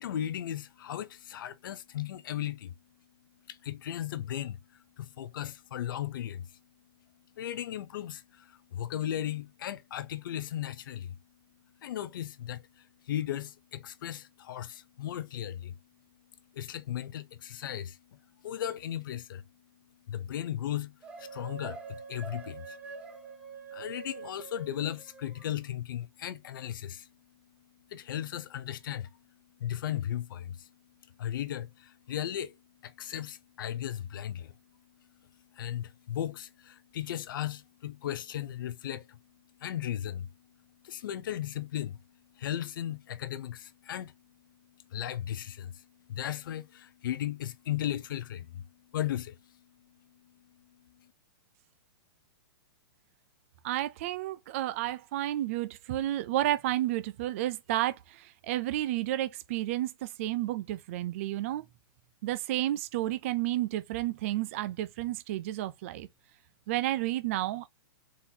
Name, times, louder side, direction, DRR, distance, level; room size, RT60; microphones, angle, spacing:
voice 1, 0.0-2.7 3.5-4.6 5.0-6.6 7.4-11.2 11.8-15.8 16.5-18.0 18.4-19.4 20.1-22.8 23.7-27.1 27.9-29.1 29.6-30.7 31.2-32.6 32.8-34.5 35.5-39.2 39.6-40.3 40.8-42.0 42.4-44.1 44.9-49.6, left 11 dB, 55° left, 0.6 m, -36 dB
sound 1, 21.0-25.5, right 5 dB, 10° right, 0.7 m, -45 dB
voice 2, 53.6-61.6 62.2-66.1 66.7-67.7, right 14 dB, 35° right, 0.4 m, -31 dB
4.2 x 3.9 x 2.7 m
hypercardioid pair, 165°, 13 cm